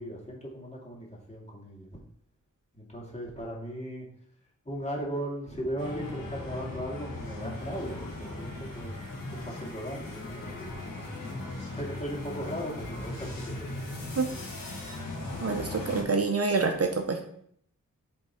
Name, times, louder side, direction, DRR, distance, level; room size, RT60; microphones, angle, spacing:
voice 1, 0.0-1.9 2.7-4.1 4.7-8.9 9.3-10.7 11.7-13.9, equal, 20° left, -3 dB, 2.3 m, -37 dB
sound 1, 5.8-16.0, left 2 dB, 85° left, 1.7 m, -38 dB
voice 2, 15.4-17.2, right 4 dB, 45° right, 4 dB, 0.8 m, -27 dB
7.6 x 3.6 x 4.4 m, 0.67 s
cardioid pair, 55°, 33 cm